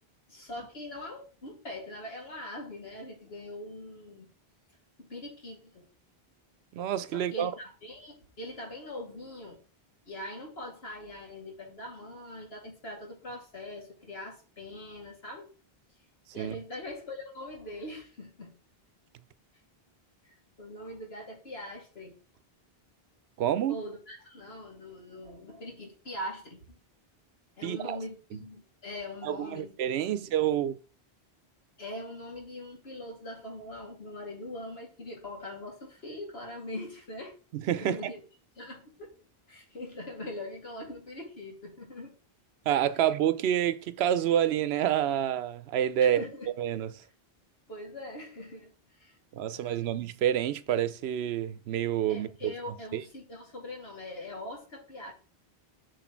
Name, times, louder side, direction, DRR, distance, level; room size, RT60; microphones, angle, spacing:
voice 1, 0.3-4.3 5.0-5.8 7.1-9.6 10.0-15.5 16.3-18.5 20.2-20.3 20.6-22.2 23.7-26.8 27.6-29.8 30.0-30.3 31.8-37.3 37.8-38.2 38.6-39.2 39.5-42.2 46.0-46.5 47.7-49.2 49.5-49.9 52.1-55.1, left 1 dB, 75° left, 2.4 m, -42 dB
voice 2, 6.7-7.5 16.4-16.6 23.4-23.8 27.6-28.0 28.3-28.4 29.2-30.8 37.5-38.0 42.7-46.2 46.6-46.9 49.3-52.5 52.9-53.0, right 10 dB, 85° right, 0.8 m, -28 dB
6.3 x 4.1 x 4.4 m
omnidirectional pair, 1.0 m